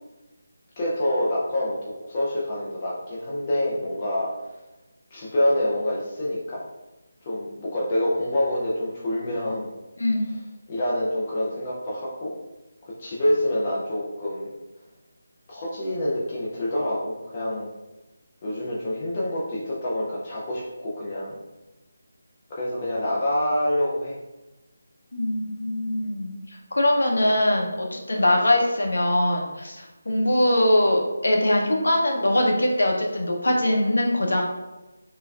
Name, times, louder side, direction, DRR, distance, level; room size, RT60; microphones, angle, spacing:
voice 1, 0.8-4.3 5.1-6.6 7.2-9.7 10.7-12.3 13.0-14.5 15.5-17.7 18.4-21.4 22.5-24.1, left 1 dB, 30° left, -6 dB, 0.5 m, -26 dB
voice 2, 25.1-26.4 26.7-34.4, left 1 dB, 75° left, 0 dB, 0.7 m, -22 dB
3.1 x 2.3 x 2.3 m, 1.1 s
figure-of-eight pair, 160°, 0 cm